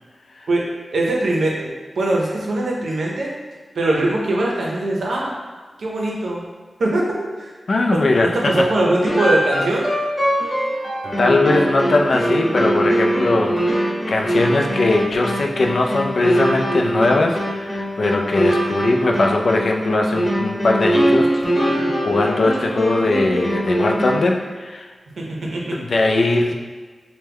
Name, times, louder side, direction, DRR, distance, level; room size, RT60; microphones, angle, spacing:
voice 1, 0.9-3.3 3.7-5.4 5.8-6.4 6.8-7.1 7.4-7.5 7.9-9.9 21.6-22.0 25.2-25.8, right 2 dB, 90° right, -2 dB, 0.6 m, -21 dB
voice 2, 7.7-8.7 11.2-24.9 25.7-26.5, left 2 dB, 65° left, 1 dB, 0.3 m, -20 dB
sound 1, 9.1-24.4, equal, 15° left, 0.8 m, -22 dB
3.2 x 2.1 x 3.4 m, 1.4 s
wide cardioid pair, 100°, 0 cm